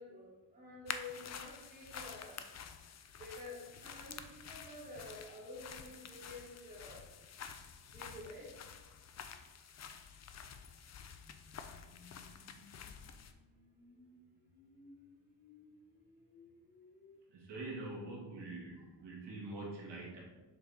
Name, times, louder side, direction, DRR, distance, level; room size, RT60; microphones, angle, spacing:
voice 1, 0.0-2.5 3.2-7.0 7.9-8.5, left 2 dB, 20° right, -6 dB, 2.3 m, -50 dB
sound 1, 0.9-13.3, left 7 dB, 40° left, 0.5 m, -49 dB
sound 2, 11.2-17.2, left 3 dB, 20° left, 1.0 m, -62 dB
voice 2, 17.3-20.2, right 2 dB, 75° right, -3 dB, 2.0 m, -45 dB
6.9 x 4.1 x 4.9 m, 1.2 s
cardioid pair, 150°, 42 cm